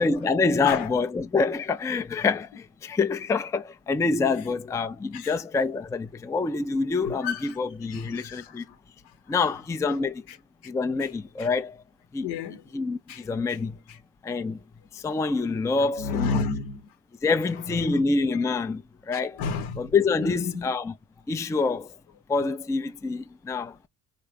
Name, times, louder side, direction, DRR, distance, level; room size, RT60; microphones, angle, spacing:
voice 1, 0.0-8.6 9.3-10.2 10.6-11.8 12.1-12.3 12.7-13.8 14.2-14.6 14.9-16.5 17.2-19.4 19.8-20.9 21.3-21.9 22.3-23.8, left 4 dB, 10° left, 0.3 m, -26 dB
voice 2, 7.1-7.6 7.9-8.8 10.3-10.4 11.4-11.5 12.2-12.6 13.1-13.2 16.0-16.8 18.3-18.4 19.1-19.9 20.2-20.6, left 5 dB, 75° left, 0.9 m, -31 dB
3.7 x 2.2 x 3.4 m
supercardioid pair, 70°, 40 cm